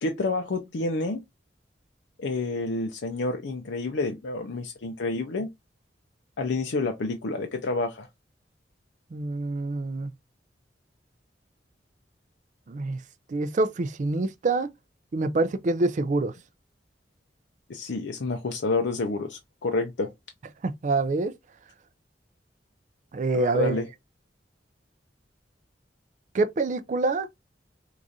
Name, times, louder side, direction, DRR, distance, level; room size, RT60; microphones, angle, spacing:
voice 1, 0.0-1.2 2.2-5.5 6.4-8.1 17.7-20.1 23.3-23.9, left 3 dB, 80° left, 0.5 m, -29 dB
voice 2, 9.1-10.1 12.7-13.0 13.3-14.7 15.1-16.3 20.6-21.3 23.1-23.8 26.3-27.3, right 3 dB, 45° right, 0.4 m, -26 dB
4.7 x 2.5 x 2.6 m
head